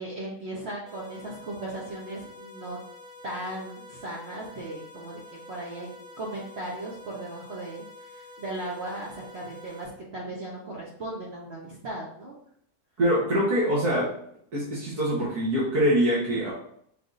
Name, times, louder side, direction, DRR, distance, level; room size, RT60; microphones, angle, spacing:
voice 1, 0.0-2.8 3.2-7.8 8.1-12.3, right 1 dB, 50° right, -4 dB, 1.0 m, -37 dB
sound 1, 0.9-9.9, left 2 dB, 70° right, 2.4 m, -47 dB
voice 2, 13.0-14.1 14.5-16.5, equal, 85° right, -7 dB, 1.8 m, -24 dB
6.0 x 3.5 x 2.5 m, 0.68 s
omnidirectional pair, 1.6 m